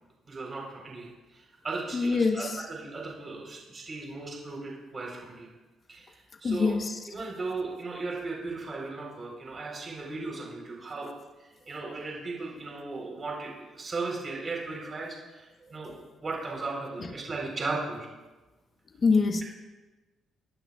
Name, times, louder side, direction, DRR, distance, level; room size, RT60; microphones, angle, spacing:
voice 1, 0.3-5.5 5.9-6.8 7.1-11.1 11.4-15.9 16.2-18.1, right 3 dB, 35° right, -1 dB, 3.9 m, -36 dB
voice 2, 1.9-2.5 6.4-6.9 19.0-19.4, left 4 dB, 40° left, 6 dB, 1.1 m, -24 dB
25.5 x 12.0 x 2.4 m, 1.1 s
cardioid pair, 90°, 0 cm